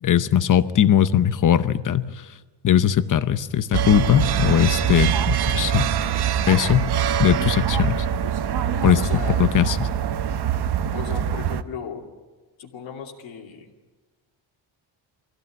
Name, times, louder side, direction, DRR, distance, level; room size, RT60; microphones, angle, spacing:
voice 1, 0.0-2.1 2.6-5.9 6.5-6.9 7.2-8.1 8.8-9.0 9.4-9.9, left 9 dB, 40° left, 13 dB, 0.8 m, -19 dB
sound 1, 3.7-11.6, right 9 dB, 55° right, 0.9 m, -23 dB
voice 2, 8.9-9.5 10.9-12.0 12.6-13.7, left 6 dB, 70° left, 1 dB, 2.8 m, -36 dB
24.0 x 16.0 x 9.9 m, 1.3 s
cardioid pair, 175°, 49 cm